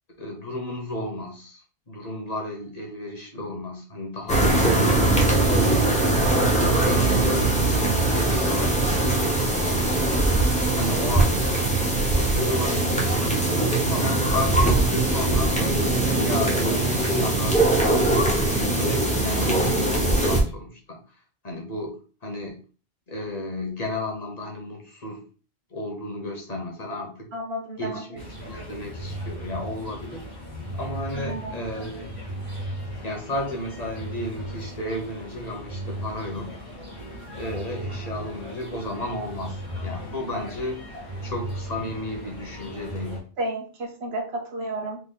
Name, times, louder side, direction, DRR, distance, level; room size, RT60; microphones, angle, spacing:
voice 1, 0.2-4.8 5.4-11.8 12.1-15.5 16.1-21.0 21.4-22.6 23.1-25.2 25.7-27.3 27.8-30.4 30.7-32.2 33.0-36.6 37.4-40.9 41.2-43.3, left 1 dB, 40° left, 1 dB, 1.0 m, -33 dB
sound 1, 4.3-20.4, right 2 dB, 5° left, 0.8 m, -21 dB
voice 2, 27.3-28.0 31.1-31.6 40.3-40.5 43.4-45.0, right 1 dB, 75° right, 2 dB, 1.2 m, -32 dB
sound 2, 28.2-43.2, equal, 30° right, 1.6 m, -37 dB
4.0 x 2.8 x 3.8 m, 0.39 s
omnidirectional pair, 1.1 m